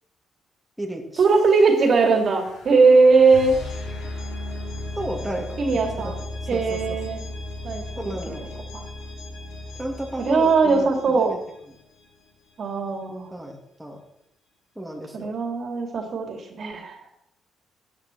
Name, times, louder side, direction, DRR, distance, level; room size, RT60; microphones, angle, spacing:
sound 1, 1.2-12.0, left 2 dB, 85° left, 3.3 m, -36 dB
voice 1, 1.2-3.6 5.6-6.2 6.5-7.2 7.6-8.1 8.7-8.8 10.2-11.3 12.6-13.3 15.1-17.0, right 4 dB, 55° right, 3 dB, 2.6 m, -19 dB
voice 2, 5.0-6.1 6.5-7.0 8.0-8.4 9.8-11.4 13.3-14.0 14.8-15.3, right 1 dB, 5° right, -1 dB, 2.8 m, -33 dB
14.0 x 9.3 x 4.6 m, 0.77 s
cardioid pair, 90°, 0 cm